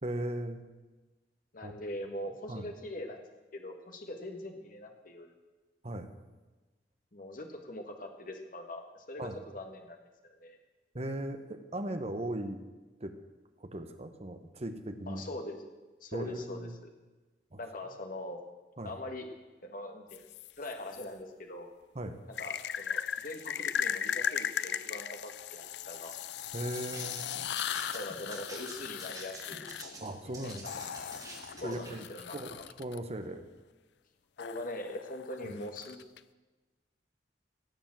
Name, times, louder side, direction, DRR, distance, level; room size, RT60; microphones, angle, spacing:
voice 1, 0.0-0.6 1.6-1.8 2.5-2.7 5.8-6.1 9.2-9.4 10.9-12.6 13.0-13.2 13.6-15.2 16.1-16.7 17.5-17.6 18.8-18.9 21.9-22.2 26.5-27.2 30.0-30.8 31.6-32.1 32.3-33.5 35.4-35.5, right 1 dB, 35° right, 8 dB, 1.1 m, -38 dB
voice 2, 1.5-3.2 3.5-5.3 7.1-10.0 10.2-10.6 15.1-15.6 16.0-16.9 17.6-18.4 18.8-19.3 19.6-20.2 20.6-21.7 22.4-26.1 27.9-29.7 30.4-30.5 31.6-32.6 34.4-36.0, left 1 dB, 50° left, 4 dB, 1.6 m, -42 dB
sound 1, 20.1-21.0 22.3-33.0 34.4-36.2, left 9 dB, 70° left, 0.5 m, -38 dB
sound 2, 26.7-32.0, right 2 dB, 20° right, 2.2 m, -48 dB
17.0 x 7.1 x 7.5 m, 1.2 s
head